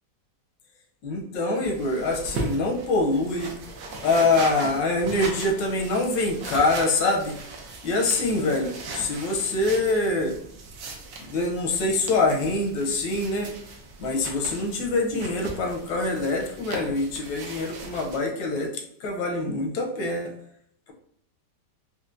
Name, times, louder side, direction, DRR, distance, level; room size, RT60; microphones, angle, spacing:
voice 1, 1.0-3.5 4.0-7.4 7.8-10.4 11.2-13.5 14.0-20.3, left 2 dB, 80° left, 1 dB, 1.3 m, -25 dB
sound 1, 1.6-18.2, right 3 dB, 70° right, 1.0 m, -38 dB
4.3 x 2.1 x 2.5 m, 0.66 s
omnidirectional pair, 1.9 m